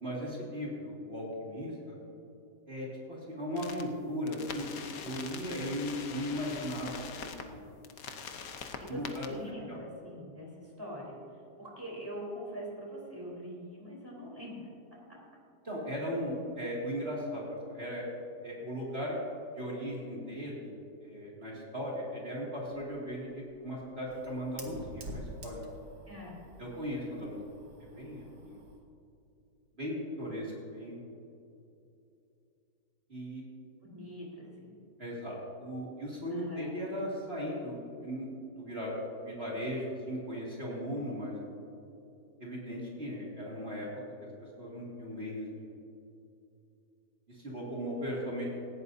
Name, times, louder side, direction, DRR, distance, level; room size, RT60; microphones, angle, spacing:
voice 1, 0.0-2.0 2.7-4.7 5.0-7.7 8.9-9.3 9.7-9.8 15.6-18.1 18.4-19.2 19.6-20.7 21.0-25.6 26.6-27.4 28.0-28.6 29.8-31.0 33.1-33.4 35.0-38.3 38.6-39.0 39.2-41.4 42.4-43.9 44.6-45.7 47.3-48.5, equal, 35° right, -5 dB, 2.7 m, -37 dB
sound 1, 3.6-3.8 4.3-7.4 7.8-9.3, left 6 dB, 60° left, 1.3 m, -43 dB
voice 2, 8.8-15.2 26.1-26.4 33.8-34.7 36.3-36.7, equal, 15° right, -4 dB, 3.8 m, -44 dB
Fire, 22.8-28.8, right 1 dB, 80° right, 2.1 m, -48 dB
18.5 x 15.5 x 2.8 m, 2.7 s
omnidirectional pair, 1.8 m